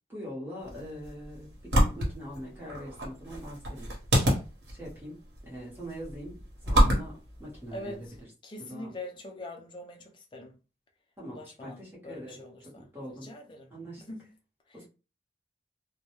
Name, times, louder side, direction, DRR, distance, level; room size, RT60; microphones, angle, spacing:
voice 1, 0.1-3.9 4.7-8.1 8.7-8.9 11.2-13.3 13.7-14.0 14.7-14.9, equal, 10° right, 0.9 m, -42 dB
sound 1, 0.6-8.2, equal, 85° right, 1.0 m, -29 dB
voice 2, 7.7-8.2 8.4-10.6 11.3-14.3 14.7-14.8, left 1 dB, 30° left, 0.4 m, -44 dB
2.2 x 2.1 x 2.9 m
head